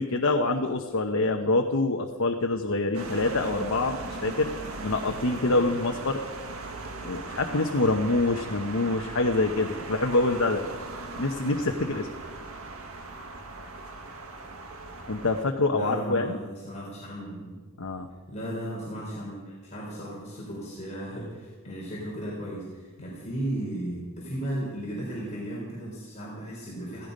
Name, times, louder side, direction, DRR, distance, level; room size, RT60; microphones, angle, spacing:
voice 1, 0.0-4.5 4.8-6.2 7.0-10.6 11.2-12.1 15.1-16.4 17.8-18.1, left 2 dB, 85° left, 3 dB, 1.0 m, -26 dB
sound 1, 2.9-15.4, right 2 dB, 90° right, 1.8 m, -39 dB
voice 2, 15.7-17.5 18.3-27.1, right 1 dB, 35° left, -5 dB, 4.0 m, -35 dB
16.5 x 16.0 x 5.3 m, 1.4 s
head